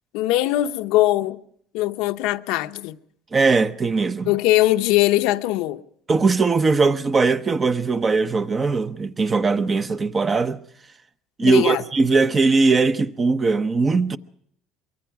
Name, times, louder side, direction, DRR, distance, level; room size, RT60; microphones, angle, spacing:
voice 1, 0.1-1.4 1.7-3.0 4.3-5.8 11.4-11.8, left 16 dB, 85° left, 0.8 m, -21 dB
voice 2, 3.3-4.3 6.1-10.6 11.4-14.2, right 4 dB, 25° right, 0.8 m, -20 dB
24.0 x 22.5 x 4.8 m
cardioid pair, 130°, 0 cm